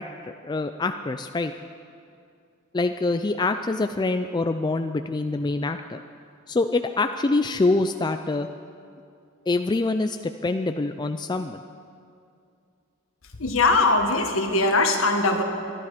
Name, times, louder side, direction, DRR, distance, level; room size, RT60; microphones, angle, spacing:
voice 1, 0.0-1.5 2.7-6.0 6.5-8.5 9.5-11.6, left 3 dB, 20° left, 7 dB, 0.4 m, -25 dB
voice 2, 13.4-15.4, left 3 dB, 65° left, 4 dB, 1.7 m, -21 dB
23.5 x 11.5 x 5.0 m, 2.4 s
head